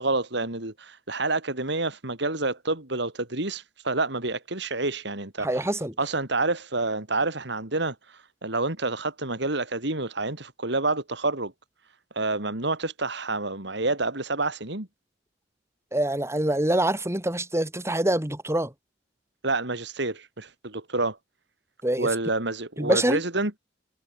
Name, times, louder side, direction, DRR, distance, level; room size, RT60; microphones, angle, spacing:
voice 1, 0.0-5.7 6.0-11.5 12.1-14.9 19.4-21.2 22.0-23.5, right 2 dB, 70° right, 4.1 m, -28 dB
voice 2, 5.4-6.0 15.9-18.7 21.8-22.1 22.8-23.2, right 1 dB, 15° right, 4.4 m, -25 dB
head